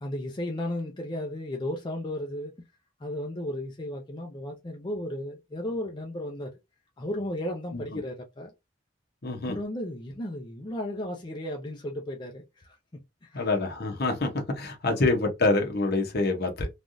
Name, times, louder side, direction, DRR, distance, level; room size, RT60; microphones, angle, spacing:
voice 1, 0.0-2.5 3.0-6.5 7.0-8.5 9.4-12.8 13.2-13.4 14.9-15.0, left 1 dB, 25° left, 0.5 m, -34 dB
voice 2, 9.2-9.6 13.3-16.7, left 2 dB, 55° left, 0.9 m, -26 dB
3.3 x 2.3 x 2.6 m
head